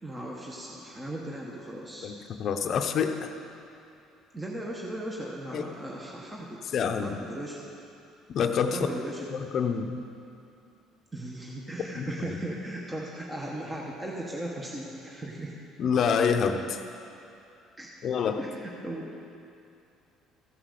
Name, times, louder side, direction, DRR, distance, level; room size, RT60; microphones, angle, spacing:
voice 1, 0.0-2.1 4.3-6.6 7.0-7.6 8.7-9.3 11.1-15.5 17.8-17.9 18.4-19.1, right 1 dB, 15° right, -2 dB, 1.1 m, -37 dB
voice 2, 2.0-3.3 5.5-5.7 6.7-7.2 8.3-8.8 9.3-10.0 12.0-12.4 15.8-16.8 18.0-18.4, left 6 dB, 50° left, 6 dB, 0.7 m, -27 dB
14.5 x 5.8 x 6.6 m, 2.6 s
cardioid pair, 115°, 0 cm